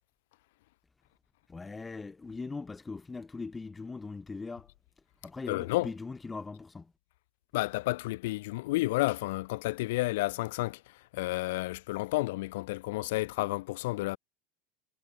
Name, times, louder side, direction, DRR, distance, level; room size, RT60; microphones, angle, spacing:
voice 1, 1.5-4.7 5.2-6.9, left 4 dB, 10° left, 0.7 m, -40 dB
voice 2, 5.5-5.9 7.5-14.2, left 20 dB, 65° left, 0.8 m, -31 dB
supercardioid pair, 180°, 0 cm